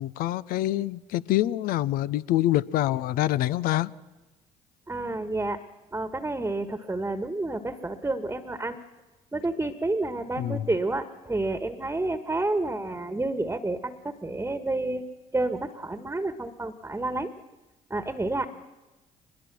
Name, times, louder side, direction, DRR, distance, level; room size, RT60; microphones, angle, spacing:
voice 1, 0.0-3.9 10.4-10.6, left 14 dB, 70° left, 0.6 m, -26 dB
voice 2, 4.9-5.6 5.9-8.8 9.3-15.0 15.3-17.3 17.9-18.5, right 2 dB, 15° right, 1.4 m, -29 dB
22.5 x 21.0 x 6.1 m
hypercardioid pair, 55°, 15 cm